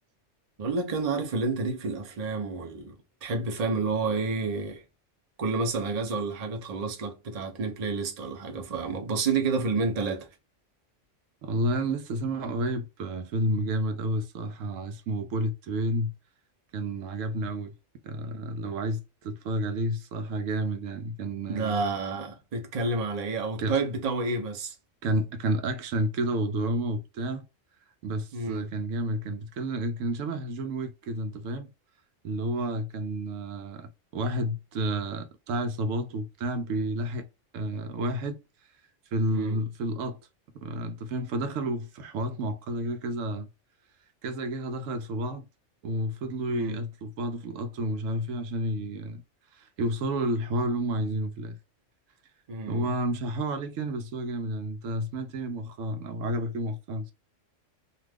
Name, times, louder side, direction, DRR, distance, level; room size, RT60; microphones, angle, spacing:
voice 1, 0.6-4.8 5.4-10.3 21.5-24.8 28.3-28.7 39.3-39.6 46.5-46.8 52.5-52.9, right 4 dB, 40° right, 0.6 m, -30 dB
voice 2, 11.4-16.1 16.7-17.7 18.0-21.8 23.6-23.8 25.0-27.4 28.0-31.7 32.2-37.3 37.5-38.4 39.1-40.2 40.5-43.5 44.2-45.5 45.8-49.2 49.5-51.6 52.7-57.1, right 1 dB, 85° right, 1.0 m, -30 dB
2.5 x 2.4 x 3.3 m
omnidirectional pair, 1.3 m